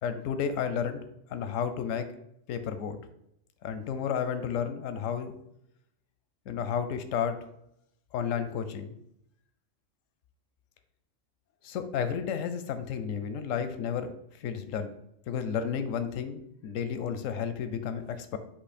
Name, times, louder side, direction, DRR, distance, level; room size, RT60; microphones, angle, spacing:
voice 1, 0.0-1.0 1.3-2.1 2.5-3.0 3.6-5.3 6.5-7.4 8.1-8.9 11.6-14.9 15.3-18.4, left 7 dB, 90° left, 9 dB, 1.0 m, -32 dB
7.7 x 2.9 x 4.2 m, 0.77 s
omnidirectional pair, 1.3 m